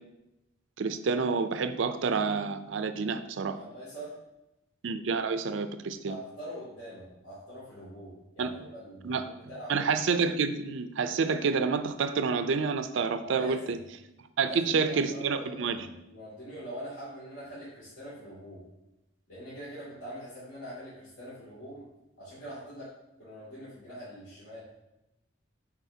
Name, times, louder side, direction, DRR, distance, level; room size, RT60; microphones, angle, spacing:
voice 1, 0.8-3.6 4.8-6.2 8.4-8.5 9.0-9.3 9.7-13.8 14.4-15.9, right 5 dB, 70° right, 10 dB, 0.4 m, -28 dB
voice 2, 3.4-4.2 6.1-9.8 13.2-13.8 14.4-18.6 19.3-21.9 22.2-22.9 23.2-24.6, equal, 75° left, -10 dB, 2.6 m, -43 dB
9.8 x 4.3 x 2.8 m, 0.90 s
head